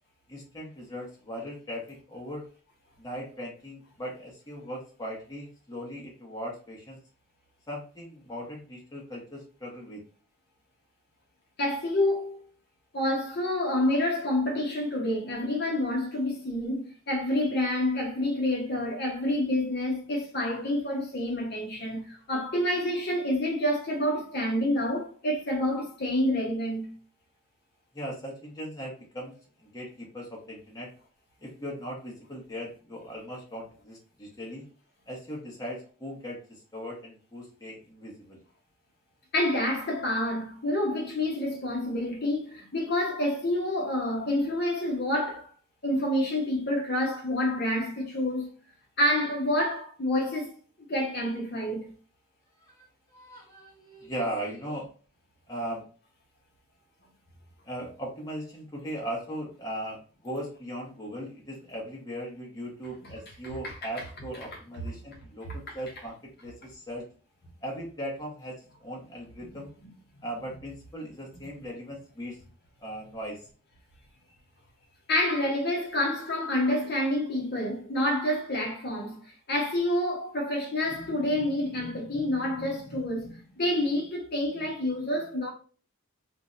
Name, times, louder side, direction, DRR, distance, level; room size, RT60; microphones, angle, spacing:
voice 1, 0.3-2.4 3.0-7.0 7.7-10.0 27.9-29.3 29.6-30.9 31.4-34.7 35.1-38.4 52.6-52.8 53.1-54.9 55.5-55.8 57.6-66.2 66.4-67.1 67.6-69.7 70.2-72.4 72.8-73.4, equal, 15° left, 0.8 m, -38 dB
voice 2, 11.6-12.4 12.9-26.9 39.3-45.5 45.8-48.5 49.0-50.6 50.9-51.9 63.6-63.7 65.7-65.8 75.1-79.2 79.5-85.5, left 1 dB, 50° left, 0.7 m, -28 dB
2.5 x 2.1 x 3.7 m
head